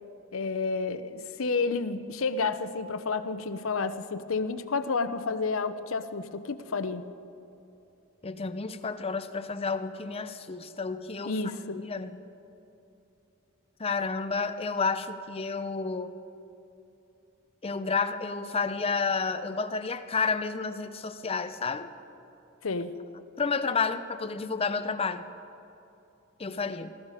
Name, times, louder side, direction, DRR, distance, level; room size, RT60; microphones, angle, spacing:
voice 1, 0.3-7.1 11.2-11.8 22.6-23.0, left 4 dB, 75° left, 12 dB, 0.7 m, -30 dB
voice 2, 8.2-11.3 11.7-12.2 13.8-16.1 17.6-21.9 23.4-25.2 26.4-26.9, left 4 dB, 30° left, 10 dB, 0.6 m, -30 dB
19.5 x 14.0 x 4.9 m, 2.9 s
head